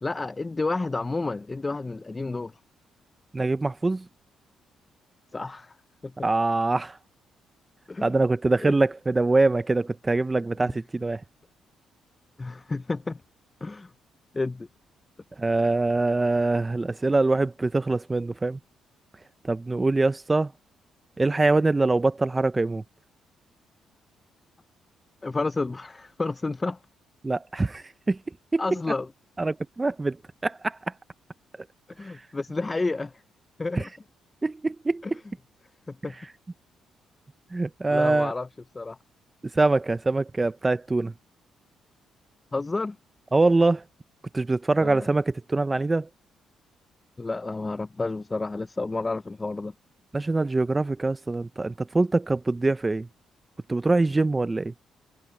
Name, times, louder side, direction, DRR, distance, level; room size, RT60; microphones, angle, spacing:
voice 1, 0.0-2.5 5.3-5.7 6.0-6.1 7.9-8.2 8.6-8.7 10.6-10.7 12.4-13.2 13.6-13.9 14.3-14.7 25.2-26.8 28.6-29.1 32.0-33.1 33.6-33.9 35.0-35.2 35.9-36.1 37.9-38.5 38.7-39.0 42.5-43.0 44.8-45.1 47.2-49.7, left 3 dB, 20° left, 0.6 m, -30 dB
voice 2, 3.3-4.0 6.2-7.0 8.0-11.2 15.4-18.6 19.5-20.5 21.2-22.8 27.2-28.2 28.5-28.6 29.4-30.2 30.4-30.8 33.8-33.9 34.4-35.0 37.5-38.3 39.5-41.1 43.3-43.8 44.3-46.1 50.1-53.1 53.7-54.7, right 3 dB, 20° right, 0.6 m, -24 dB
cardioid pair, 90°, 0 cm